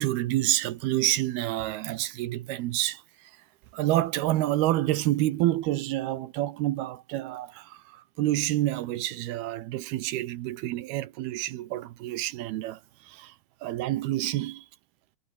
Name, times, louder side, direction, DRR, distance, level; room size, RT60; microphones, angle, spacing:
voice 1, 0.0-3.3 3.7-13.3 13.6-14.7, right 15 dB, 85° right, 3.1 m, -28 dB
omnidirectional pair, 4.4 m